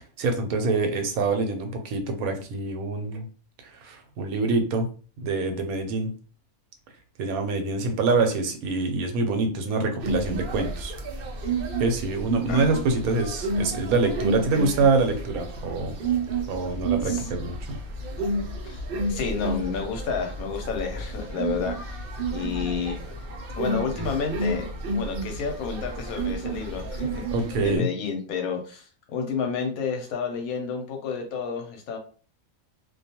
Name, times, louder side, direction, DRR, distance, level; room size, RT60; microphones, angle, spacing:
voice 1, 0.2-3.3 3.6-4.9 5.2-6.1 7.2-10.9 11.8-16.0 16.5-17.8 24.0-24.1 27.3-27.9, right 3 dB, 85° right, 6 dB, 1.1 m, -25 dB
sound 1, 10.0-27.8, right 2 dB, 65° right, 0.5 m, -31 dB
voice 2, 19.1-22.0 22.3-23.2 23.6-24.7 24.9-27.2 27.6-32.0, left 6 dB, 85° left, 3 dB, 1.1 m, -30 dB
2.4 x 2.3 x 2.7 m, 0.40 s
omnidirectional pair, 1.5 m